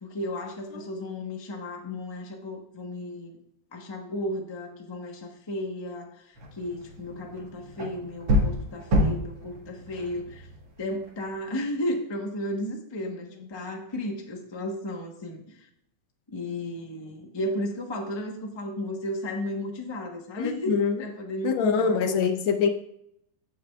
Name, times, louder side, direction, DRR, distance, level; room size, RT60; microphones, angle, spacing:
voice 1, 0.0-3.4 3.7-10.5 10.8-15.7 16.3-22.2, left 1 dB, 25° left, 0.6 m, -34 dB
sound 1, 6.4-11.2, equal, 65° right, 2.2 m, -29 dB
voice 2, 20.4-21.0 21.4-22.7, left 6 dB, 75° left, 1.5 m, -24 dB
16.0 x 5.9 x 2.3 m
omnidirectional pair, 2.3 m